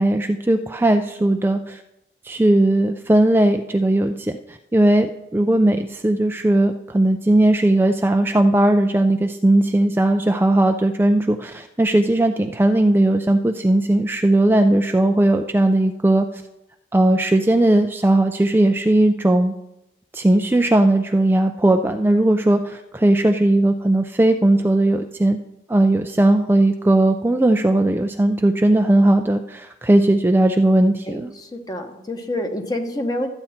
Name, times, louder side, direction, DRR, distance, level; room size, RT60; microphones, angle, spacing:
voice 1, 0.0-1.8 2.2-16.4 16.9-19.5 20.1-25.4 25.7-31.3, right 1 dB, 10° right, 5 dB, 0.4 m, -18 dB
voice 2, 31.1-33.3, left 1 dB, 20° left, 4 dB, 1.2 m, -27 dB
13.0 x 8.9 x 4.3 m, 0.86 s
head